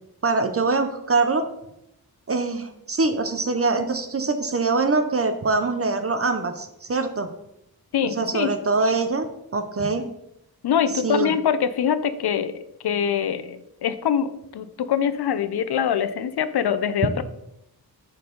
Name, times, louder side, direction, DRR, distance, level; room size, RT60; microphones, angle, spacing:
voice 1, 0.2-1.5 2.3-7.3 8.2-9.3 9.5-10.1 11.0-11.3, right 3 dB, 40° right, 8 dB, 0.6 m, -23 dB
voice 2, 7.9-8.5 10.6-12.5 12.8-17.2, left 8 dB, 85° left, 13 dB, 0.6 m, -24 dB
6.8 x 4.1 x 5.2 m, 0.82 s
wide cardioid pair, 135°, 38 cm